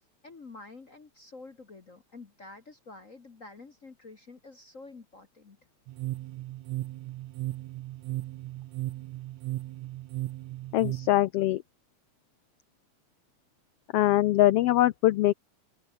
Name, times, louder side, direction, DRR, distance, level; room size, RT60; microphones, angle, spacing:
voice 1, 0.2-5.6, left 3 dB, 35° left, 1.5 m, -48 dB
sound 1, 5.9-11.1, right 16 dB, 80° right, 2.0 m, -36 dB
voice 2, 10.7-11.6 13.9-15.3, left 15 dB, 80° left, 1.3 m, -22 dB
open air
omnidirectional pair, 3.3 m